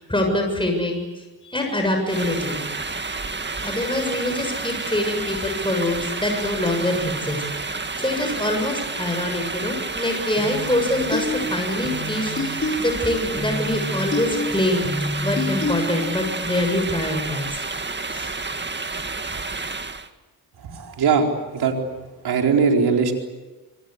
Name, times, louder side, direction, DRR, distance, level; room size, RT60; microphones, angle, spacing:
voice 1, 0.0-2.6 3.6-14.9 15.2-17.5 18.1-18.3, left 1 dB, 15° left, 3 dB, 7.1 m, -25 dB
sound 1, 2.1-20.1, right 3 dB, 30° right, 2.0 m, -30 dB
sound 2, 10.4-16.3, left 2 dB, 35° left, 6.3 m, -29 dB
voice 2, 20.7-21.3 21.5-21.7 22.2-23.1, right 5 dB, 85° right, 2 dB, 4.5 m, -19 dB
26.5 x 25.0 x 8.3 m, 1.2 s
cardioid pair, 60°, 38 cm